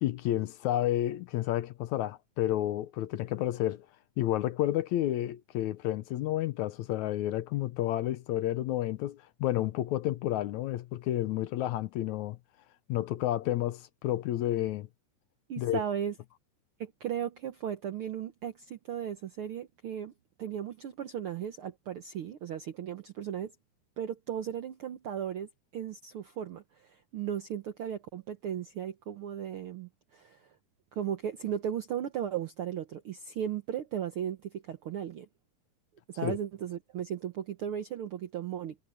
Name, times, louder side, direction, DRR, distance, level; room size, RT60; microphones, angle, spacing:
voice 1, 0.0-3.9 4.2-12.4 12.9-14.9 15.6-15.8 36.2-36.4, left 13 dB, 75° left, 1.9 m, -30 dB
voice 2, 15.5-16.1 16.8-20.1 20.4-23.5 24.0-30.5 30.9-35.3 36.1-38.8, right 9 dB, 70° right, 1.3 m, -36 dB
omnidirectional pair, 3.6 m